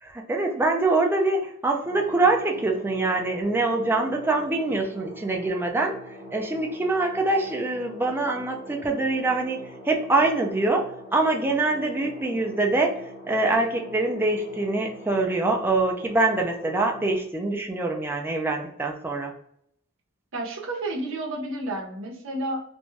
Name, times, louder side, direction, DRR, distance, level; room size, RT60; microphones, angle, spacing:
voice 1, 0.0-5.9 6.3-19.3, right 2 dB, 10° right, 1 dB, 0.4 m, -24 dB
sound 1, 1.8-17.2, equal, 30° right, 1.1 m, -43 dB
voice 2, 20.3-22.6, right 1 dB, 65° right, 0 dB, 0.7 m, -31 dB
2.6 x 2.2 x 3.1 m, 0.69 s
head